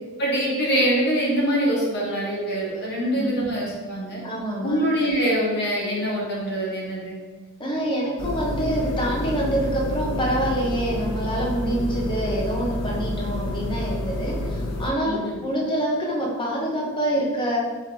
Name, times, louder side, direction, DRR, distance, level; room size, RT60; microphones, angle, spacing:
voice 1, 0.2-4.2 4.6-7.2 15.0-15.4, equal, 50° left, -5 dB, 1.2 m, -24 dB
voice 2, 4.2-4.8 7.6-17.6, right 1 dB, 20° left, -3 dB, 0.7 m, -26 dB
sound 1, 8.2-14.9, left 1 dB, 90° left, 0.6 m, -29 dB
3.5 x 3.0 x 3.8 m, 1.4 s
head